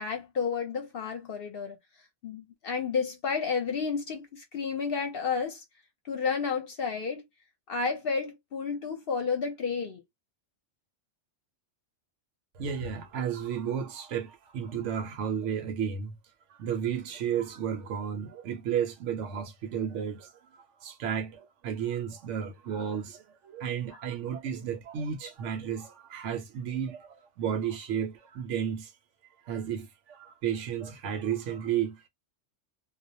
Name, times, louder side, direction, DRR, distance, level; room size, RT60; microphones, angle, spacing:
voice 1, 0.0-1.8 2.2-5.6 6.0-7.3 7.7-10.0, left 5 dB, 60° left, 0.8 m, -31 dB
voice 2, 12.5-16.1 16.5-28.9 29.4-32.1, right 8 dB, 80° right, 0.9 m, -33 dB
2.3 x 2.0 x 2.6 m
omnidirectional pair, 1.2 m